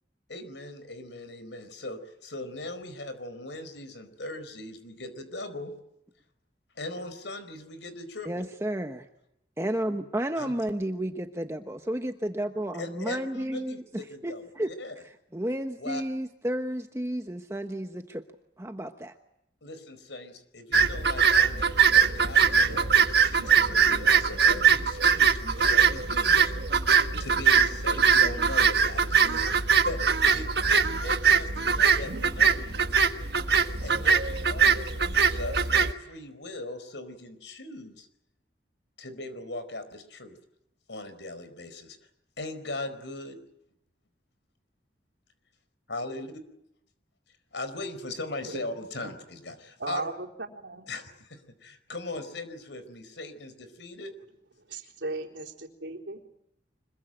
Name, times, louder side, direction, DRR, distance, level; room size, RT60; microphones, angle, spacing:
voice 1, 0.3-5.7 6.8-8.5 10.4-10.6 12.8-14.9 15.8-16.0 19.6-26.5 27.2-33.0 33.8-38.1 39.0-40.4 40.9-42.0 42.4-43.4 45.9-46.4 47.5-50.1 50.9-54.1, left 2 dB, 80° left, 12 dB, 4.6 m, -39 dB
voice 2, 8.3-9.1 9.6-14.7 15.0-18.2 18.6-19.1, right 1 dB, 15° right, 6 dB, 1.1 m, -32 dB
sound 1, 20.7-35.9, right 6 dB, 65° right, 1.5 m, -22 dB
voice 3, 49.8-50.9 54.6-55.5 55.8-56.2, right 3 dB, 85° right, -1 dB, 4.0 m, -36 dB
25.5 x 22.5 x 9.1 m, 0.79 s
head